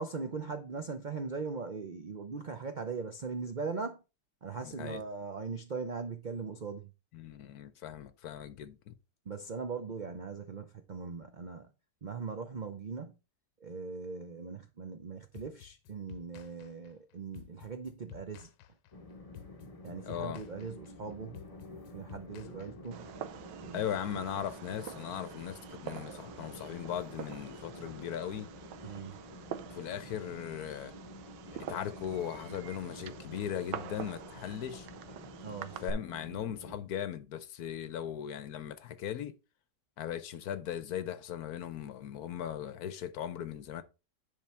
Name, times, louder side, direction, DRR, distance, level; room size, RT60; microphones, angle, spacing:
voice 1, 0.0-4.0 4.4-6.9 9.3-11.7 12.0-13.1 13.6-18.5 19.8-21.4 21.9-23.1 23.6-24.0 28.8-29.2 35.4-35.8, right 5 dB, 70° right, 0.4 m, -40 dB
voice 2, 4.6-5.0 7.1-8.9 20.1-20.4 23.7-28.5 29.7-30.9 31.7-34.9 35.8-39.4 40.0-43.8, left 9 dB, 65° left, 1.1 m, -38 dB
sound 1, 15.3-23.2, left 11 dB, 90° left, 1.3 m, -53 dB
Train, 18.9-36.8, left 2 dB, 30° left, 0.7 m, -50 dB
Fireworks, 22.9-35.9, right 9 dB, 90° right, 1.4 m, -46 dB
10.5 x 3.8 x 4.4 m
omnidirectional pair, 1.9 m